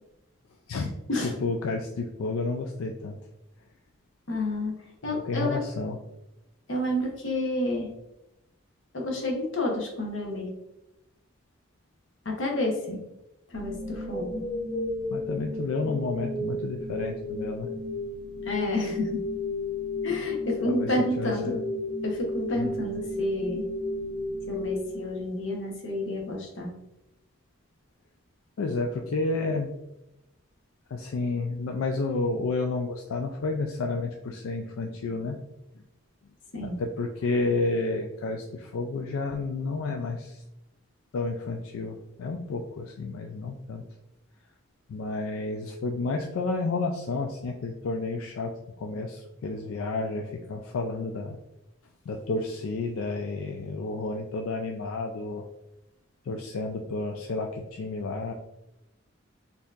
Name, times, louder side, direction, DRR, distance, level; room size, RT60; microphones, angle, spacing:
voice 1, 1.2-3.2 5.1-6.0 15.1-17.7 20.6-20.9 21.2-21.5 22.6-22.7 28.6-29.7 30.9-35.4 36.8-40.4 41.1-43.8 44.9-48.5 48.8-51.4 52.1-55.5 56.2-58.3, left 3 dB, 80° left, 2 dB, 0.3 m, -31 dB
voice 2, 4.3-4.7 5.0-5.6 6.7-7.9 8.9-10.5 12.2-13.0 13.5-14.4 18.5-19.2 20.0-21.6 22.0-23.6 24.5-26.7 36.5-36.8, left 1 dB, 60° left, 0 dB, 0.9 m, -30 dB
sound 1, 13.5-25.6, left 2 dB, 20° left, 0.6 m, -33 dB
4.3 x 2.8 x 2.4 m, 0.92 s
head